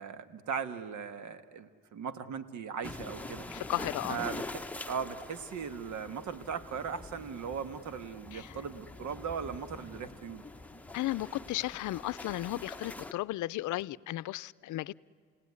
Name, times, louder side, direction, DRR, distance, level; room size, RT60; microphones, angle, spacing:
voice 1, 0.0-3.4 4.1-4.4 4.9-10.4, right 6 dB, 70° right, 1.5 m, -38 dB
sound 1, 2.8-13.1, left 2 dB, 5° left, 1.0 m, -44 dB
voice 2, 3.5-4.2 8.3-8.6 10.9-15.0, left 16 dB, 80° left, 0.6 m, -35 dB
30.0 x 18.0 x 9.6 m
cardioid pair, 90°, 30 cm